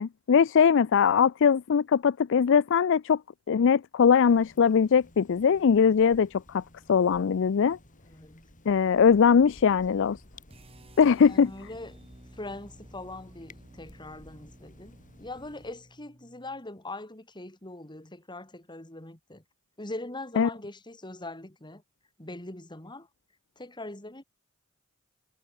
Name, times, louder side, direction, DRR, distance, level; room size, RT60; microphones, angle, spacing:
voice 1, 0.0-3.2 3.5-6.6 6.9-7.8 8.7-10.2 11.0-11.5 20.4-20.5, left 6 dB, 60° left, 0.4 m, -21 dB
sound 1, 4.3-15.8, left 1 dB, 35° left, 7.4 m, -55 dB
voice 2, 8.1-8.5 11.2-12.0 12.4-19.4 19.8-21.8 22.2-23.1 23.6-24.2, left 2 dB, 20° left, 3.3 m, -41 dB
sound 2, 10.5-16.6, right 1 dB, 25° right, 3.1 m, -53 dB
head